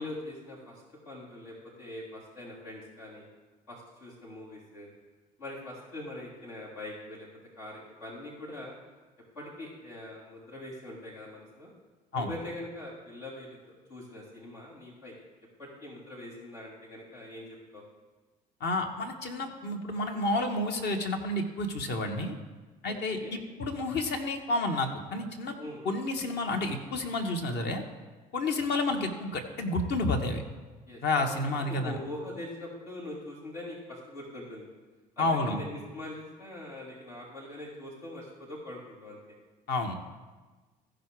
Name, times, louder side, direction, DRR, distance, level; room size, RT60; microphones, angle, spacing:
voice 1, 0.0-3.3 3.7-4.9 5.4-7.3 7.6-8.8 9.3-11.7 12.1-13.6 13.9-15.1 15.6-17.8 22.9-23.3 25.6-25.8 30.9-31.3 31.6-34.7 35.2-39.2, left 1 dB, 90° left, -7 dB, 3.5 m, -43 dB
voice 2, 18.6-22.3 22.8-25.5 25.8-27.8 28.3-30.4 31.0-32.0 35.2-35.6 39.7-40.0, left 2 dB, 60° left, 3 dB, 1.4 m, -30 dB
15.0 x 5.1 x 4.7 m, 1.3 s
hypercardioid pair, 60°, 20 cm